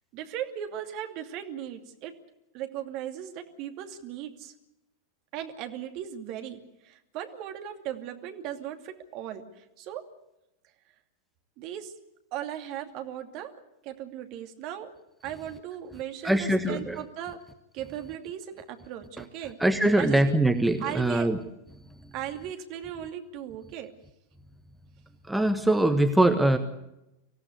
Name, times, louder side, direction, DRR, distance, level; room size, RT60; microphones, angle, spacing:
voice 1, 0.1-2.1 2.5-4.5 5.3-10.0 11.6-11.9 12.3-13.5 13.8-14.9 15.2-17.4 17.7-19.6 20.0-20.4 20.8-21.3 22.1-23.9, right 10 dB, 40° right, 6 dB, 2.6 m, -37 dB
voice 2, 16.2-17.0 19.6-21.4 25.3-26.6, right 1 dB, 5° right, 7 dB, 1.4 m, -22 dB
25.0 x 16.5 x 8.1 m, 0.90 s
figure-of-eight pair, 90°, 0 cm